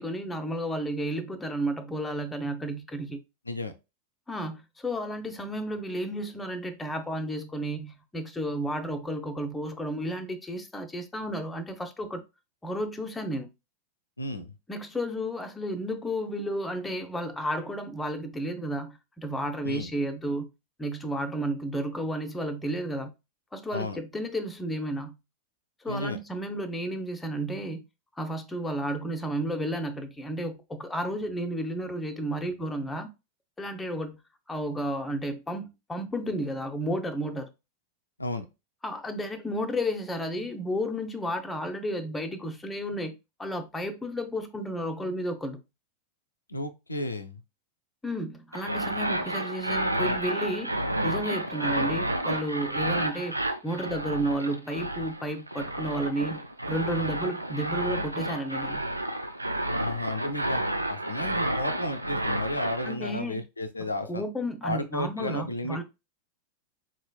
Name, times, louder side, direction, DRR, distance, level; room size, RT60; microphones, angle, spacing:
voice 1, 0.0-3.2 4.3-12.2 12.6-13.5 14.7-20.5 20.8-23.1 23.5-25.2 25.8-27.8 28.2-33.1 33.6-34.2 34.5-37.5 38.8-43.1 43.4-45.6 48.0-50.8 51.0-58.8 62.9-63.4 64.0-65.8, equal, 10° left, 0.6 m, -32 dB
voice 2, 14.2-14.5 19.6-19.9 23.7-24.0 25.9-26.2 38.2-38.4 46.5-47.4 59.8-60.6 60.9-64.2 64.6-65.8, left 1 dB, 80° left, 0.4 m, -33 dB
sound 1, 48.5-62.9, right 1 dB, 85° right, 0.3 m, -30 dB
3.9 x 3.1 x 2.2 m
figure-of-eight pair, 90°, 0 cm